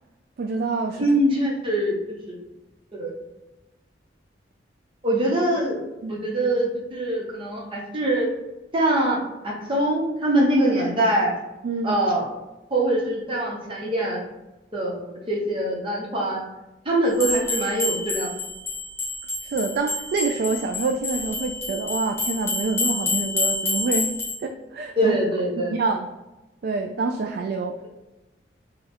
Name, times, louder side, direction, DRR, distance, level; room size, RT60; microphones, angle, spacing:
voice 1, 0.4-1.1 6.0-6.2 11.6-11.9 19.4-24.1 24.4-25.2 25.6-26.1 26.6-27.9, right 3 dB, 55° right, 3 dB, 0.3 m, -26 dB
voice 2, 1.0-1.9 2.3-2.4 2.9-3.1 5.0-5.8 6.1-8.3 8.7-9.2 9.4-11.3 11.8-12.3 12.7-14.2 14.7-16.4 16.8-18.3 25.0-25.7, right 1 dB, 30° right, -3 dB, 0.9 m, -23 dB
sound 1, 17.2-24.4, left 3 dB, 15° left, 0.7 m, -28 dB
3.5 x 2.3 x 4.2 m, 1.0 s
head